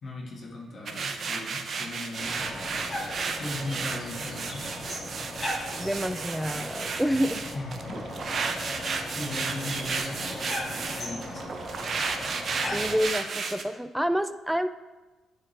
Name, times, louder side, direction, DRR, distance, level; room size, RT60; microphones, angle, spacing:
voice 1, 0.0-4.7 7.5-8.1 9.1-11.7, left 2 dB, 50° left, -3 dB, 1.7 m, -38 dB
sound 1, 0.9-13.6, right 5 dB, 50° right, 0.6 m, -33 dB
sound 2, 2.2-13.0, left 1 dB, 25° left, 2.3 m, -37 dB
voice 2, 5.8-7.4 12.7-14.7, equal, 5° right, 11 dB, 0.4 m, -28 dB
9.1 x 4.7 x 3.3 m, 1.2 s
cardioid pair, 90°, 0 cm